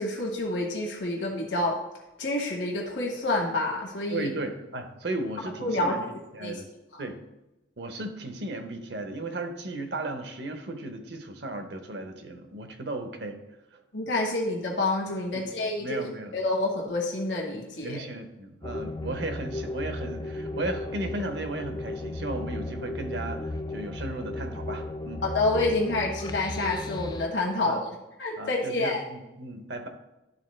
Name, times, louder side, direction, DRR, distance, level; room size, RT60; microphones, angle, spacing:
voice 1, 0.0-1.8 2.2-4.3 5.6-6.1 6.4-6.6 6.9-7.0 13.9-16.0 16.3-18.0 25.2-27.9 28.2-29.0, left 2 dB, 75° left, -1 dB, 1.3 m, -28 dB
voice 2, 4.1-6.1 6.3-6.6 7.0-7.2 7.8-13.4 13.7-13.8 15.3-15.5 15.8-16.3 17.8-25.2 27.6-27.8 28.4-29.9, right 2 dB, 65° right, 6 dB, 0.9 m, -35 dB
sound 1, 18.6-27.3, left 2 dB, 20° left, 0.3 m, -35 dB
11.0 x 3.8 x 3.2 m, 0.97 s
head